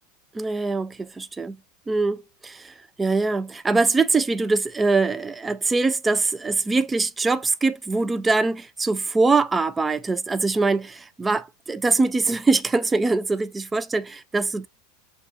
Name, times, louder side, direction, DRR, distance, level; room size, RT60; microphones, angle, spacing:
voice 1, 0.3-1.5 1.9-14.7, right 3 dB, 15° right, 0.4 m, -23 dB
7.0 x 2.3 x 2.4 m
supercardioid pair, 110°, 0 cm